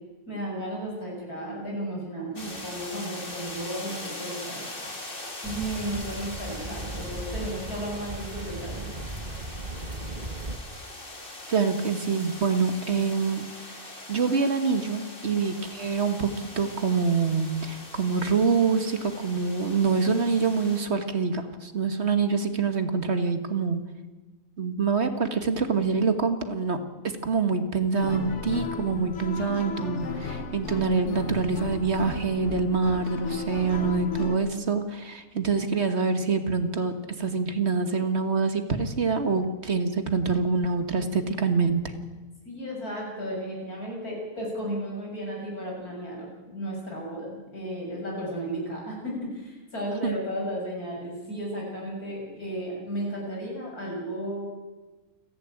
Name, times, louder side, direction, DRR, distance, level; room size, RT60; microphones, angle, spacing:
voice 1, 0.3-4.6 5.4-8.9 28.9-29.6 34.5-34.8 42.5-54.5, equal, 85° left, -2 dB, 7.5 m, -34 dB
sound 1, 2.4-20.8, left 2 dB, 35° left, 3.0 m, -41 dB
sound 2, 5.4-10.6, right 2 dB, 30° right, 1.4 m, -37 dB
voice 2, 11.5-23.9 24.6-41.9 50.0-50.2, right 5 dB, 50° right, 8 dB, 1.8 m, -26 dB
sound 3, 28.0-34.4, left 5 dB, 55° left, 1.4 m, -35 dB
29.0 x 11.0 x 9.0 m, 1.2 s
omnidirectional pair, 1.5 m